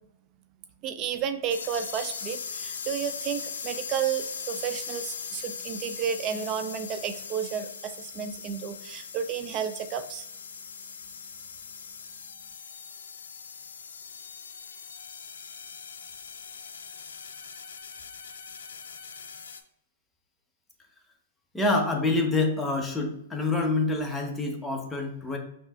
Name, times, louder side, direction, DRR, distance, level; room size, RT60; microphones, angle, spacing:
voice 1, 0.8-10.3, right 8 dB, 35° right, 9 dB, 0.4 m, -32 dB
sound 1, 1.5-19.6, left 6 dB, 85° left, 0.4 m, -40 dB
voice 2, 21.5-25.4, left 2 dB, 5° left, 1 dB, 0.7 m, -26 dB
5.4 x 2.8 x 2.2 m, 0.77 s
hypercardioid pair, 130°, 0 cm